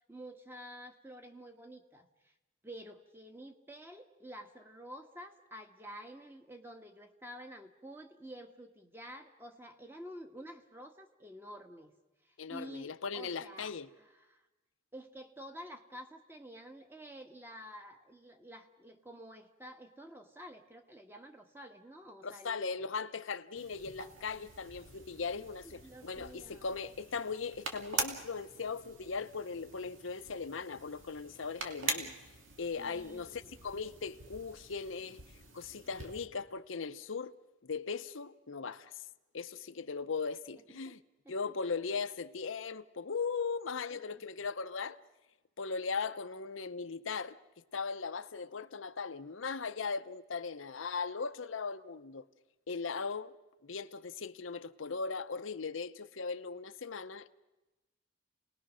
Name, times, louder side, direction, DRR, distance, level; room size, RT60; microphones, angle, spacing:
voice 1, 0.0-2.3 2.6-11.9 12.2-14.5 14.9-22.8 25.6-26.7 32.0-32.2 32.8-33.5 40.8-41.0 41.2-41.3 43.9-44.2, equal, 10° right, 1.4 m, -50 dB
voice 2, 12.4-13.9 22.2-32.1 32.6-35.2 35.5-37.3 37.6-39.0 39.3-41.0 41.3-45.0 45.6-47.4 47.7-52.3 52.7-53.3 53.6-57.3, left 5 dB, 85° left, 0.8 m, -38 dB
sound 1, 23.5-36.3, right 4 dB, 85° right, 2.5 m, -44 dB
29.5 x 20.0 x 6.3 m
head